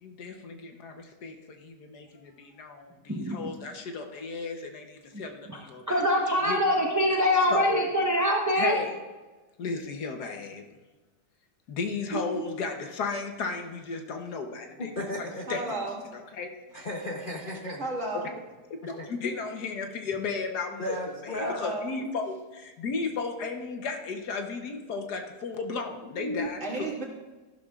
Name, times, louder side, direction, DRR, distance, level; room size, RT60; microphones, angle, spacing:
voice 1, 0.0-6.0 6.4-6.6 7.1-7.2 7.5-7.9 8.5-9.0 9.6-10.6 11.7-14.9 15.2-15.8 16.1-16.5 18.9-21.0 21.2-26.9, left 4 dB, 70° left, 4 dB, 1.5 m, -35 dB
voice 2, 3.1-3.4 5.9-8.7 12.3-12.4 26.2-26.5, left 1 dB, 15° right, -1 dB, 0.7 m, -24 dB
voice 3, 14.8-15.7 16.7-17.9 18.9-19.1 20.8-21.6, left 1 dB, 40° left, -1 dB, 0.8 m, -35 dB
voice 4, 15.5-16.0 17.8-18.3 21.4-22.0 26.6-27.0, right 2 dB, 45° right, -3 dB, 2.3 m, -33 dB
14.0 x 11.5 x 2.4 m, 1.2 s
omnidirectional pair, 1.8 m